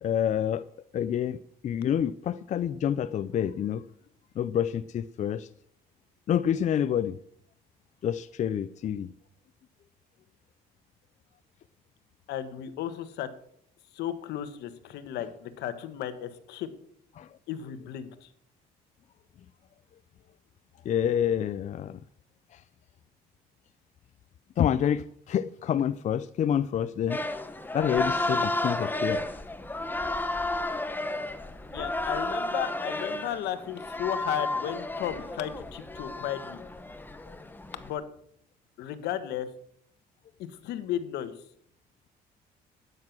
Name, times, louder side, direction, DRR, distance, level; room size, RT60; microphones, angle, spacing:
voice 1, 0.0-0.7 0.9-3.9 4.4-5.5 6.3-7.2 8.0-9.1 17.2-17.4 20.8-22.0 22.5-22.6 24.6-27.2 27.7-29.3 37.3-37.4, left 9 dB, 45° left, 13 dB, 0.5 m, -28 dB
voice 2, 12.3-13.3 13.9-16.7 17.5-18.3 31.7-36.6 37.7-38.0 38.8-39.5 40.4-41.3, left 11 dB, 80° left, 11 dB, 1.5 m, -34 dB
sound 1, 27.1-37.9, left 2 dB, 10° left, 1.2 m, -32 dB
12.5 x 9.7 x 6.1 m, 0.67 s
cardioid pair, 110°, 17 cm